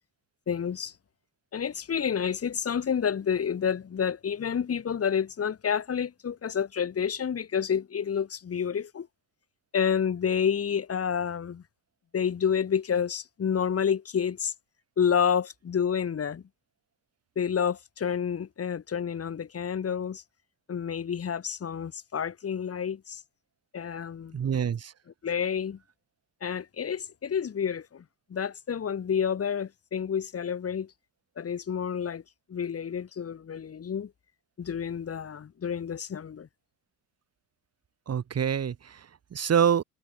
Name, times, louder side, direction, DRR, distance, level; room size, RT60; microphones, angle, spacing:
voice 1, 0.5-0.9 1.5-9.1 9.7-11.6 12.1-14.5 15.0-16.4 17.3-20.2 20.7-23.2 23.7-24.4 25.2-25.8 26.4-28.0 28.3-30.9 31.4-32.2 32.5-34.1 34.6-36.5, left 7 dB, 40° left, 6.7 m, -29 dB
voice 2, 24.3-24.9 38.1-39.8, right 8 dB, 45° right, 7.6 m, -26 dB
supercardioid pair, 80°, 35 cm